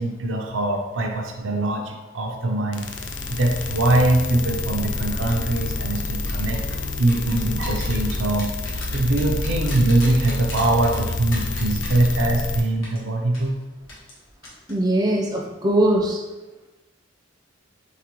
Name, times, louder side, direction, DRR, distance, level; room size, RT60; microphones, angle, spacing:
voice 1, 0.0-2.9 3.3-6.6 7.0-8.5 8.9-13.5, right 2 dB, 75° right, 2 dB, 0.6 m, -22 dB
sound 1, 2.7-12.6, left 3 dB, 65° left, 0.5 m, -28 dB
sound 2, 5.3-5.6 6.3-12.5 12.8-13.0 13.3-13.5 13.9-14.2 14.4-14.7 15.0-15.2, left 2 dB, 80° left, 1.3 m, -37 dB
voice 2, 14.7-16.2, right 1 dB, 20° right, -1 dB, 0.5 m, -20 dB
3.9 x 3.8 x 3.0 m, 1.1 s
head